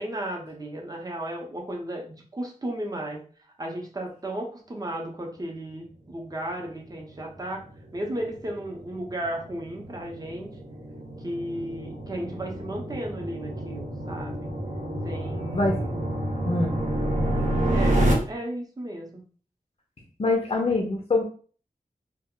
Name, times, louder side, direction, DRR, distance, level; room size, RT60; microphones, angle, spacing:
voice 1, 0.0-3.2 3.6-7.6 7.9-10.5 11.2-14.5 15.0-16.0 17.7-19.2, right 1 dB, 25° right, 1 dB, 0.6 m, -34 dB
sound 1, 7.0-18.1, right 1 dB, 60° right, 0.7 m, -29 dB
voice 2, 15.5-15.8 16.5-16.8 20.2-21.2, left 3 dB, 40° left, 1 dB, 0.5 m, -24 dB
2.2 x 2.1 x 3.6 m, 0.42 s
wide cardioid pair, 100°, 14 cm